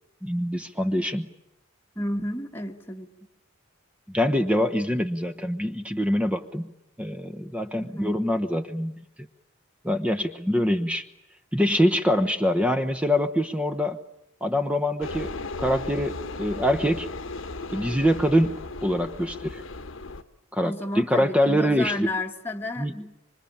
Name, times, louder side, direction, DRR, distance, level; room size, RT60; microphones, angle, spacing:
voice 1, 0.2-1.3 4.1-6.7 7.0-9.3 9.8-11.1 11.5-14.0 14.4-15.3 15.6-17.1 17.7-19.6 20.5-22.1 22.8-23.1, equal, 5° right, 9 dB, 1.0 m, -24 dB
voice 2, 1.9-3.1 7.7-8.2 20.6-22.9, left 1 dB, 10° left, 1 dB, 1.4 m, -32 dB
sound 1, 15.0-20.2, left 3 dB, 70° left, 1.3 m, -36 dB
26.5 x 24.5 x 8.8 m, 0.85 s
head